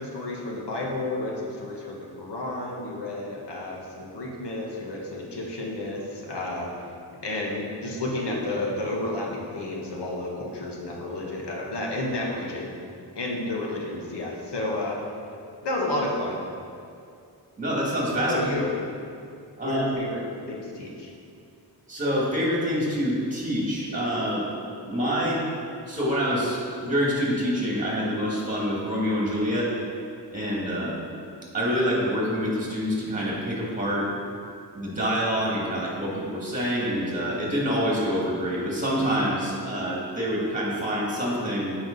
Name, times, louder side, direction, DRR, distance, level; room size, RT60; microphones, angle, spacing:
voice 1, 0.0-6.9 7.2-12.7 13.1-15.0 15.6-16.4 18.2-18.7 19.6-20.2 20.5-21.1, left 2 dB, 90° left, -2 dB, 1.3 m, -31 dB
voice 2, 17.6-18.3 19.6-19.8 21.9-24.5 24.9-25.4 25.9-29.7 30.3-31.0 31.5-34.1 34.7-41.8, equal, 20° right, -5 dB, 2.0 m, -26 dB
7.8 x 4.8 x 5.3 m, 2.4 s
wide cardioid pair, 135°, 40 cm